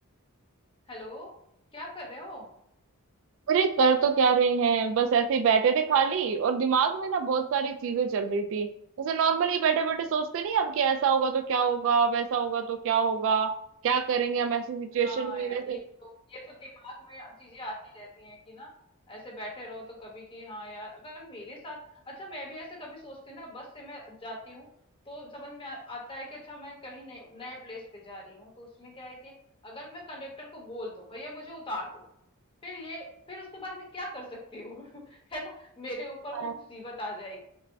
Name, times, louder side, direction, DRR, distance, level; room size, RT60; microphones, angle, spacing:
voice 1, 0.9-1.3 1.7-2.5 15.0-18.7 19.1-21.8 22.1-24.7 25.1-29.3 29.6-32.1 32.6-37.4, left 1 dB, 25° left, -1 dB, 0.9 m, -41 dB
voice 2, 3.5-8.7 9.0-13.5 13.8-15.8 36.4-36.5, right 6 dB, 60° right, 7 dB, 0.3 m, -25 dB
5.2 x 2.1 x 2.7 m, 0.77 s
head